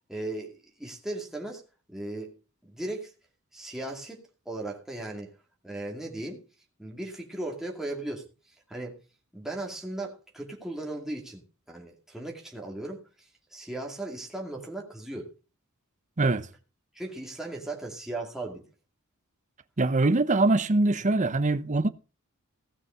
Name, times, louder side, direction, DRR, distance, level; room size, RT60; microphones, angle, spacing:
voice 1, 0.1-0.5 0.8-1.6 1.9-2.3 2.6-3.1 3.5-4.2 4.5-5.3 5.6-6.4 6.8-8.2 8.7-9.0 9.3-11.4 11.7-15.3 16.9-18.6 21.0-21.1, right 2 dB, ahead, 2.3 m, -37 dB
voice 2, 16.2-16.5 19.8-21.9, right 2 dB, 35° right, 0.8 m, -23 dB
16.5 x 6.3 x 5.6 m
head